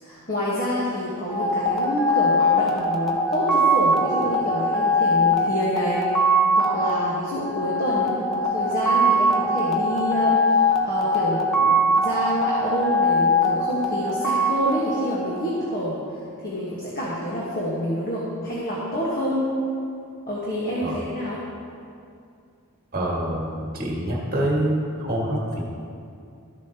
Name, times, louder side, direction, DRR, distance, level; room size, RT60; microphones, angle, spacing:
voice 1, 0.0-6.0 6.5-16.0 16.4-19.5 20.3-21.4, equal, 40° left, -7 dB, 1.4 m, -27 dB
sound 1, 1.3-15.7, equal, ahead, 0.7 m, -22 dB
voice 2, 22.9-25.6, right 1 dB, 40° right, -2 dB, 1.7 m, -26 dB
13.0 x 7.1 x 2.9 m, 2.4 s
head